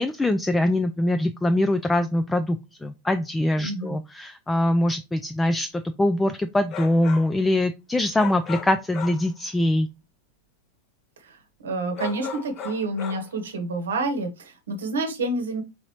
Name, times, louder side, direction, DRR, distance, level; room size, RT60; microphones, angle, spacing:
voice 1, 0.0-9.9, left 1 dB, 10° left, 8 dB, 0.3 m, -23 dB
voice 2, 3.6-3.9 11.2-11.4 11.6-15.6, right 2 dB, 65° right, 6 dB, 0.9 m, -28 dB
sound 1, 6.7-7.4 8.1-9.3 12.0-13.3, left 6 dB, 35° left, 0.7 m, -36 dB
4.0 x 3.8 x 2.9 m, 0.26 s
figure-of-eight pair, 90°, 0 cm